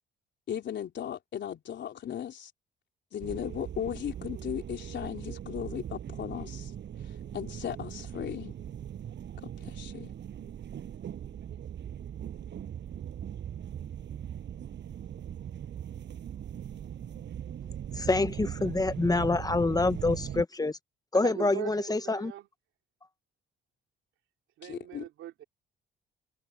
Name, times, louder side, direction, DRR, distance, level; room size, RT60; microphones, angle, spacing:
voice 1, 0.5-2.5 3.1-6.7 7.3-8.6 9.6-10.1 24.7-25.0, left 9 dB, 65° left, 3.6 m, -36 dB
sound 1, 3.2-20.4, right 9 dB, 65° right, 6.4 m, -40 dB
voice 2, 17.9-20.8 21.1-22.3, left 3 dB, 20° left, 1.2 m, -26 dB
voice 3, 21.2-22.5 24.6-25.4, right 13 dB, 85° right, 3.5 m, -40 dB
cardioid pair, 90°, 20 cm